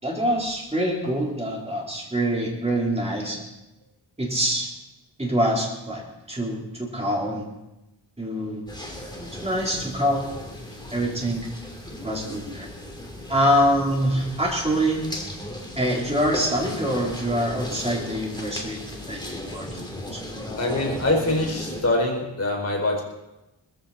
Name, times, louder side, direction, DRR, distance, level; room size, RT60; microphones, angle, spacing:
voice 1, 0.0-3.5 4.2-4.7 5.2-6.0 6.3-7.5 8.2-8.6 9.4-10.3 10.9-11.5 12.0-12.7 13.3-15.0 15.8-18.8 19.1-19.2 19.5-19.9 20.1-20.2, equal, 15° right, -3 dB, 4.2 m, -25 dB
sound 1, 8.7-21.8, left 1 dB, 10° left, 2.9 m, -36 dB
voice 2, 20.6-23.0, left 2 dB, 35° left, 0 dB, 4.8 m, -24 dB
20.5 x 15.0 x 4.4 m, 0.94 s
wide cardioid pair, 135°, 45 cm